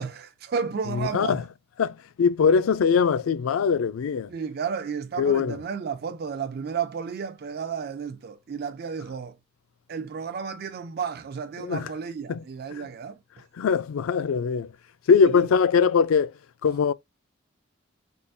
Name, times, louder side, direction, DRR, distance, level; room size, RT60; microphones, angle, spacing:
voice 1, 0.0-1.4 4.3-9.4 9.9-13.2 15.2-15.5, right 6 dB, 50° right, 0.3 m, -32 dB
voice 2, 0.9-1.4 1.8-4.3 5.2-5.6 11.6-11.9 12.3-12.4 12.7-12.9 13.6-14.7 15.1-16.3 16.6-16.9, left 6 dB, 85° left, 0.4 m, -22 dB
3.7 x 2.5 x 2.3 m
head